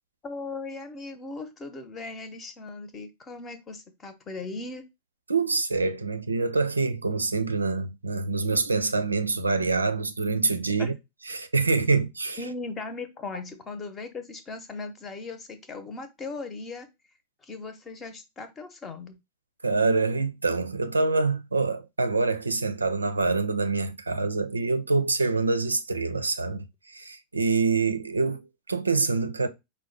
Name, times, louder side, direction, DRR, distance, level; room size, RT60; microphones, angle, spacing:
voice 1, 0.2-4.8 10.8-10.9 12.4-16.9 17.4-19.1, left 3 dB, 25° left, 0.8 m, -38 dB
voice 2, 5.3-10.9 11.3-12.4 19.6-29.5, right 3 dB, 80° right, 0.4 m, -26 dB
5.0 x 2.2 x 3.9 m
figure-of-eight pair, 90°, 0 cm